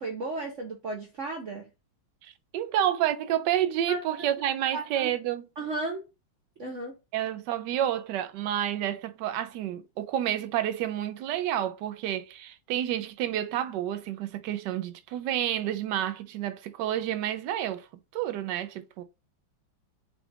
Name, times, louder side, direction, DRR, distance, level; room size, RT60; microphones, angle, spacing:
voice 1, 0.0-1.7 3.9-4.0 4.7-5.1 5.6-6.0 6.6-6.9, right 2 dB, 60° right, 0.8 m, -34 dB
voice 2, 2.2-5.5 7.1-17.9 18.1-19.0, right 11 dB, 75° right, 1.1 m, -29 dB
6.1 x 2.4 x 3.3 m
omnidirectional pair, 2.2 m